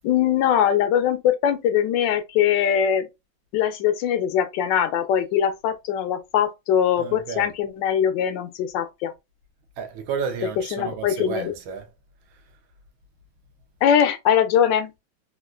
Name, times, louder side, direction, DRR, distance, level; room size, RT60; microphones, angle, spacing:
voice 1, 0.0-3.1 3.5-9.1 10.7-11.5 13.8-14.9, left 9 dB, 75° left, 1.2 m, -21 dB
voice 2, 7.0-7.5 9.8-11.9, right 6 dB, 80° right, 1.5 m, -31 dB
3.6 x 2.4 x 2.3 m
omnidirectional pair, 2.1 m